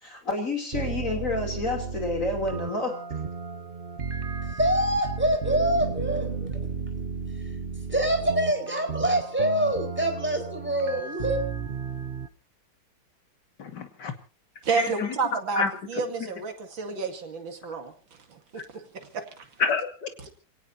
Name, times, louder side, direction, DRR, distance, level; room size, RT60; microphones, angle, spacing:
voice 1, 0.0-3.0, left 2 dB, 40° left, 3.5 m, -29 dB
sound 1, 0.7-12.3, right 5 dB, 45° right, 0.7 m, -33 dB
voice 2, 4.5-6.3 7.9-11.4, right 1 dB, 5° right, 4.5 m, -25 dB
voice 3, 13.6-14.1 14.8-15.1 15.6-15.7 19.6-20.3, left 5 dB, 60° left, 2.7 m, -28 dB
voice 4, 14.6-17.9 18.3-19.5, right 5 dB, 75° right, 3.1 m, -31 dB
28.0 x 18.0 x 2.8 m
omnidirectional pair, 2.2 m